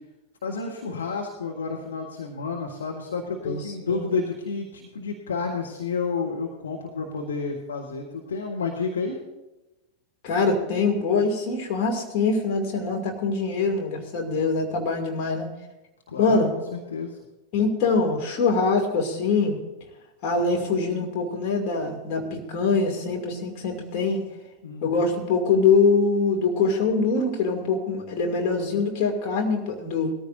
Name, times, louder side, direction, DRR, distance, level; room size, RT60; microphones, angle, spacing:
voice 1, 0.4-9.2 16.1-16.4 16.7-17.2 24.6-25.1, left 4 dB, 65° left, 0 dB, 1.4 m, -30 dB
voice 2, 10.2-15.5 16.2-16.5 17.5-19.6 20.2-24.2 24.8-30.1, left 4 dB, 40° left, 1 dB, 2.7 m, -23 dB
20.0 x 14.0 x 2.7 m, 1.0 s
figure-of-eight pair, 90°, 0 cm